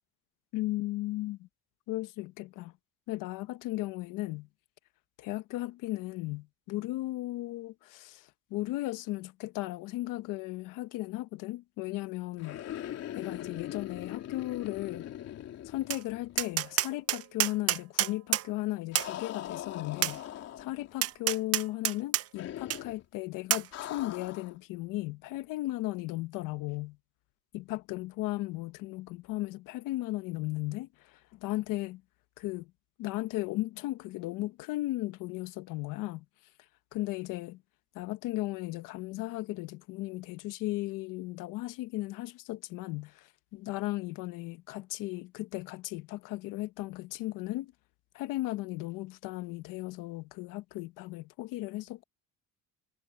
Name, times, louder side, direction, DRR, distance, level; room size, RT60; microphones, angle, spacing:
voice 1, 0.5-1.5 1.9-2.7 3.1-4.5 5.2-15.1 15.6-20.2 20.6-27.0 27.5-32.0 32.4-32.7 33.0-36.2 36.9-37.6 37.9-47.7 48.1-52.0, left 18 dB, 85° left, 1.2 m, -36 dB
sound 1, 12.4-16.5 16.8-16.9 18.9-20.9 22.4-23.0 23.7-24.6, left 11 dB, 50° left, 3.2 m, -41 dB
Tap, 15.9-16.0 16.4-18.5 18.9-19.1 20.0-20.2 21.0-22.2 22.7-22.8 23.5-23.7, right 13 dB, 50° right, 0.9 m, -28 dB
cardioid pair, 155°, 32 cm